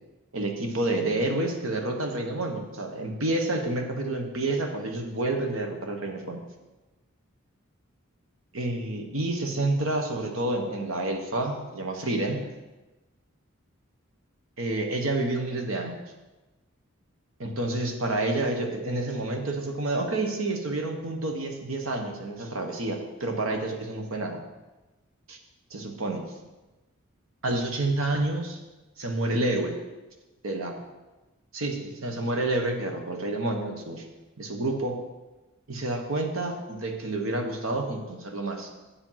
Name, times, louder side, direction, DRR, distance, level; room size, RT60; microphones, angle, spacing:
voice 1, 0.3-6.4 8.5-12.5 14.6-16.0 17.4-24.4 25.3-25.4 25.7-26.2 27.4-28.6 29.0-29.7 30.4-30.8 31.5-34.1 34.4-35.0 35.7-38.7, right 2 dB, 70° right, 3 dB, 1.2 m, -29 dB
8.4 x 5.1 x 5.7 m, 1.1 s
head